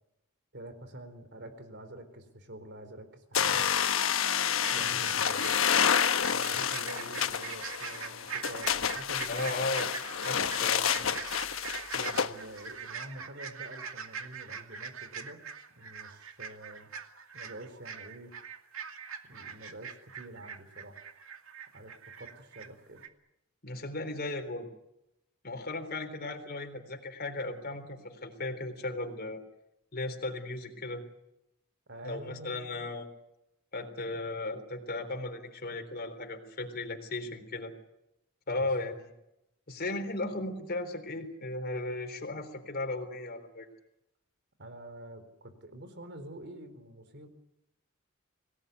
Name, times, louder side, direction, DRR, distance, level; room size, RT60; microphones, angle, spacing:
voice 1, 0.5-3.7 4.7-5.5 6.3-9.9 10.8-11.2 11.9-15.4 15.8-16.9 17.3-18.3 19.2-21.1 21.7-23.0 31.9-32.7 38.5-38.9 44.6-47.3, right 1 dB, 55° right, 10 dB, 4.1 m, -47 dB
sound 1, 3.3-12.3, left 8 dB, 70° left, 1.2 m, -29 dB
sound 2, 4.6-22.7 23.0-23.1, right 6 dB, 70° right, 2.4 m, -43 dB
voice 2, 9.3-9.9 10.2-10.8 23.6-24.7 25.4-29.4 29.9-31.0 32.0-33.1 33.7-37.7 38.5-39.1 39.7-43.7, left 2 dB, 50° left, 5 dB, 3.8 m, -36 dB
26.5 x 18.5 x 9.5 m, 0.87 s
head